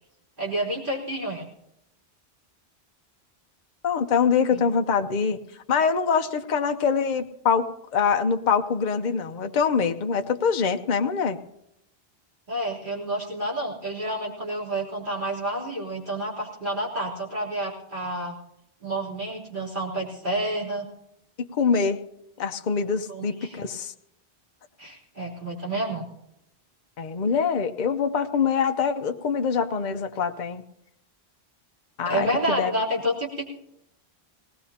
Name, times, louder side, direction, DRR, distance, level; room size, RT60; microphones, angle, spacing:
voice 1, 0.4-1.4 4.5-4.6 12.5-18.3 18.8-20.9 23.1-23.6 24.8-26.0 32.0-33.5, right 1 dB, 50° right, -6 dB, 3.7 m, -29 dB
voice 2, 3.8-5.4 5.7-11.4 21.5-22.0 22.4-23.9 27.0-30.6 32.0-32.7, left 6 dB, 50° left, 7 dB, 0.8 m, -24 dB
19.0 x 18.5 x 2.9 m, 0.82 s
omnidirectional pair, 1.1 m